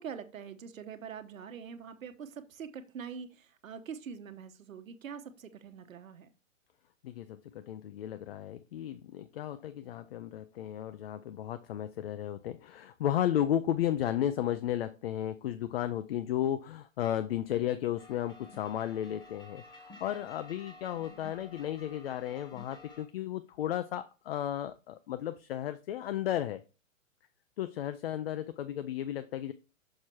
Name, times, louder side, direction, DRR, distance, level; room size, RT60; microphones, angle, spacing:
voice 1, 0.0-6.3, right 7 dB, 80° right, 9 dB, 1.1 m, -44 dB
voice 2, 7.0-26.6 27.6-29.5, left 11 dB, 50° left, 12 dB, 0.5 m, -34 dB
sound 1, 18.0-23.0, left 3 dB, 10° left, 1.1 m, -52 dB
6.6 x 4.6 x 4.4 m, 0.32 s
hypercardioid pair, 140°, 40 cm